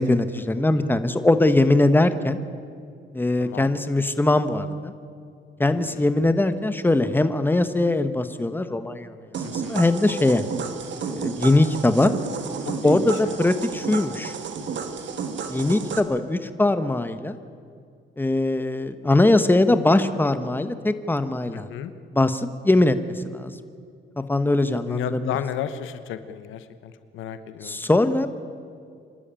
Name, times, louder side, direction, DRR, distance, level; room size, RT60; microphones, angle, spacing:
voice 1, 0.0-2.4 3.1-4.9 5.6-9.1 9.5-10.4 11.0-12.1 12.8-14.3 15.5-17.4 18.2-21.7 22.1-22.9 23.2-23.5 24.2-25.2 27.6-28.3, left 2 dB, 10° left, 10 dB, 1.2 m, -21 dB
voice 2, 3.4-3.7 5.9-6.1 9.4-9.9 12.6-13.3 21.5-21.9 24.6-27.8, left 9 dB, 90° left, 11 dB, 1.1 m, -34 dB
sound 1, 9.3-16.0, right 6 dB, 70° right, 1.9 m, -32 dB
26.5 x 12.5 x 8.9 m, 2.2 s
cardioid pair, 90°, 20 cm